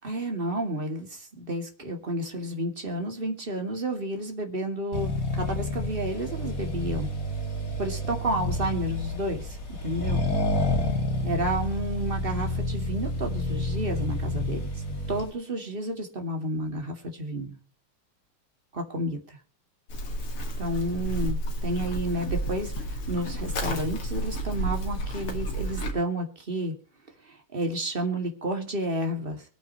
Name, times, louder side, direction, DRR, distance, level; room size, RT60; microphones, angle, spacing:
voice 1, 0.0-7.1 7.8-9.6 9.8-10.2 11.2-14.6 15.1-17.6 18.7-19.4 20.6-26.7 27.3-29.4, right 1 dB, 25° right, 3 dB, 2.5 m, -31 dB
Accelerating revving vroom, 4.9-15.3, left 1 dB, 40° left, 2.8 m, -29 dB
Livestock farm animals working animals, 19.9-25.9, equal, 85° left, 3.2 m, -31 dB
24.0 x 9.2 x 3.1 m, 0.42 s
omnidirectional pair, 2.3 m